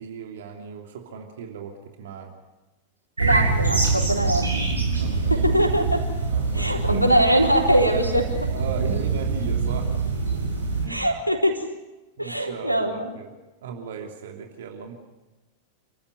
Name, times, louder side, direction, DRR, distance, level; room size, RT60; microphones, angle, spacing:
voice 1, 0.0-2.3 4.9-5.5 6.3-7.1 8.5-9.9 10.3-10.4 10.8-11.1 12.2-13.3 13.6-14.9, right 6 dB, 60° right, 3 dB, 3.0 m, -37 dB
voice 2, 3.2-4.6 5.3-6.1 6.5-8.5 10.9-11.6 12.2-13.1, equal, 90° left, 1 dB, 4.3 m, -22 dB
sound 1, 3.2-10.8, right 4 dB, 80° right, 5.6 m, -24 dB
29.5 x 14.5 x 9.6 m, 1.1 s
figure-of-eight pair, 90°, 0 cm